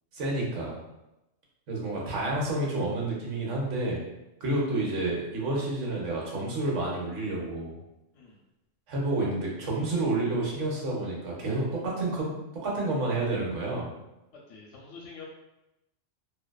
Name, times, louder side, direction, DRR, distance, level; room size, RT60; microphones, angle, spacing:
voice 1, 0.1-0.8 1.7-4.0 4.4-7.8 8.9-12.3 12.6-13.9, right 2 dB, 80° right, -3 dB, 1.0 m, -29 dB
voice 2, 14.5-15.2, left 5 dB, 80° left, -3 dB, 0.9 m, -46 dB
2.6 x 2.3 x 2.2 m, 0.93 s
omnidirectional pair, 1.2 m